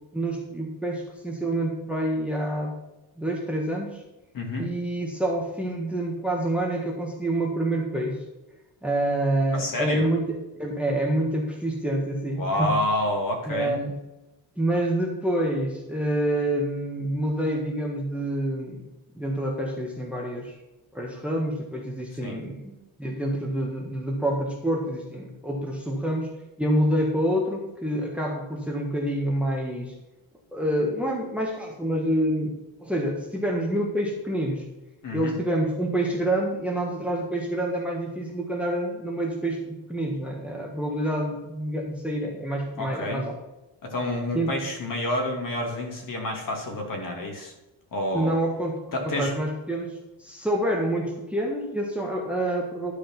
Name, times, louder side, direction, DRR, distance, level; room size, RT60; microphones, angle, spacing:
voice 1, 0.1-2.8 3.2-4.0 4.6-8.2 8.8-12.7 13.5-13.9 14.6-18.8 19.1-20.5 20.9-26.3 26.6-29.9 30.5-34.6 35.1-43.4 44.3-44.5 48.1-48.8 49.0-52.9, right 1 dB, 5° right, -1 dB, 1.4 m, -27 dB
voice 2, 4.3-4.7 9.5-10.1 12.3-13.8 22.2-22.4 35.0-35.4 42.8-43.2 43.8-47.5 47.9-48.4 48.9-49.3, left 1 dB, 45° left, 2 dB, 2.6 m, -28 dB
12.0 x 5.0 x 5.9 m, 1.0 s
cardioid pair, 155°, 46 cm